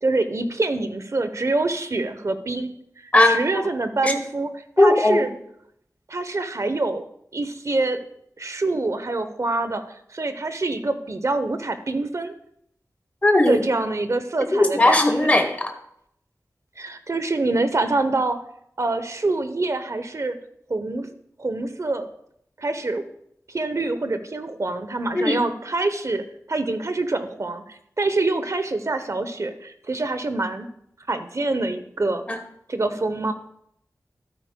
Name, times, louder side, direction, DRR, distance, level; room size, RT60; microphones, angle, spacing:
voice 1, 0.0-2.7 3.0-4.5 4.8-5.3 6.1-7.0 7.3-8.0 8.4-12.3 13.5-15.3 16.8-18.4 18.8-20.4 20.7-21.1 21.4-22.1 22.6-23.0 23.5-30.7 31.1-32.2 32.7-33.3, right 2 dB, 55° right, 10 dB, 0.8 m, -25 dB
voice 2, 4.8-5.3 13.2-13.6 14.5-15.7 25.1-25.4 32.3-32.4, left 2 dB, 20° left, 6 dB, 0.9 m, -17 dB
12.5 x 9.5 x 2.2 m, 0.73 s
wide cardioid pair, 80°, 6 cm